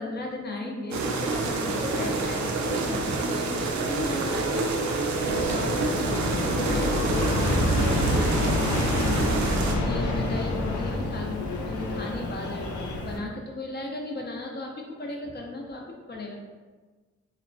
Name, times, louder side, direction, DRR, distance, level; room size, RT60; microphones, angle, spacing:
voice 1, 0.0-4.7 5.2-6.2 6.6-8.6 9.8-16.4, left 2 dB, 35° left, 0 dB, 0.6 m, -35 dB
sound 1, 0.9-9.8, right 3 dB, 75° right, 0.4 m, -27 dB
Aircraft, 5.2-13.2, left 1 dB, 85° left, 0.4 m, -27 dB
2.8 x 2.1 x 2.6 m, 1.4 s
cardioid pair, 45°, 29 cm